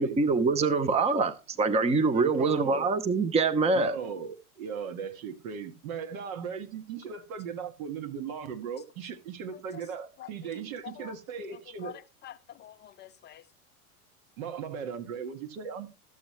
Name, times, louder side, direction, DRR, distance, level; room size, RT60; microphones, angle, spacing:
voice 1, 0.0-4.0, right 4 dB, 15° right, 0.8 m, -25 dB
voice 2, 2.1-3.0 3.7-12.0 14.4-15.9, right 6 dB, 65° right, 2.0 m, -38 dB
voice 3, 11.8-13.4, left 12 dB, 25° left, 0.5 m, -47 dB
13.5 x 8.0 x 3.3 m
hypercardioid pair, 105°, 45 cm